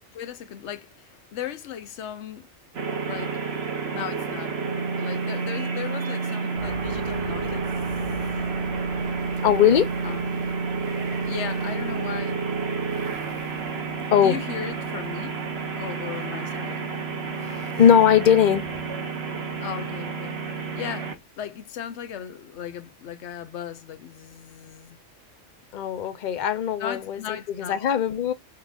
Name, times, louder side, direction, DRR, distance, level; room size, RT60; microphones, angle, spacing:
voice 1, 0.0-2.5 3.1-3.4 3.9-4.6 5.0-8.5 10.0-10.3 11.2-12.5 14.2-15.3 15.7-16.8 19.6-20.4 20.7-25.0 26.8-27.8, left 9 dB, 70° left, 1.0 m, -36 dB
sound 1, 2.7-21.1, right 4 dB, 60° right, 1.2 m, -30 dB
sound 2, 6.6-16.1, right 2 dB, 25° right, 0.9 m, -44 dB
voice 2, 9.4-9.9 14.1-14.4 17.3-18.6 25.7-27.2 27.7-28.3, left 9 dB, 50° left, 0.7 m, -20 dB
5.7 x 2.5 x 3.6 m
omnidirectional pair, 1.3 m